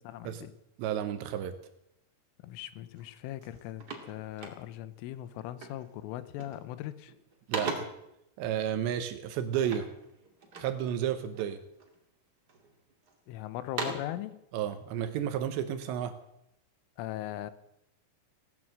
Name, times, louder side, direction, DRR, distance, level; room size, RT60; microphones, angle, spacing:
voice 1, 0.0-0.5 2.4-7.1 13.3-14.4 17.0-17.5, left 13 dB, 85° left, 14 dB, 3.3 m, -39 dB
voice 2, 0.8-1.6 7.5-7.9 8.4-9.9 10.6-11.6 14.5-16.2, right 10 dB, 75° right, 10 dB, 2.8 m, -32 dB
sound 1, 2.9-3.1 3.4-5.0 5.6-5.9 6.2-6.7 7.1-8.1 9.6-10.8 11.3-12.0 12.5-13.1 13.5-14.2, right 3 dB, 45° right, 1.3 m, -39 dB
17.5 x 9.6 x 7.7 m, 0.83 s
omnidirectional pair, 5.7 m